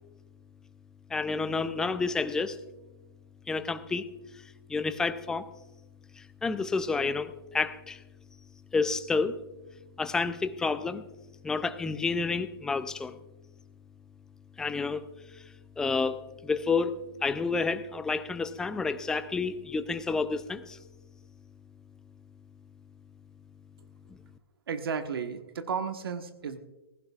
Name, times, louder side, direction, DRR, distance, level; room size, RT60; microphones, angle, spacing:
voice 1, 1.1-2.6 3.5-4.1 4.3-5.5 6.1-8.0 8.7-9.4 10.0-11.1 11.4-13.2 14.6-15.1 15.3-15.4 15.8-20.8 24.1-24.2, left 4 dB, 5° left, 12 dB, 0.4 m, -30 dB
voice 2, 24.7-26.6, right 6 dB, 70° right, 8 dB, 1.3 m, -33 dB
18.5 x 15.0 x 2.4 m, 1.0 s
hypercardioid pair, 150°, 13 cm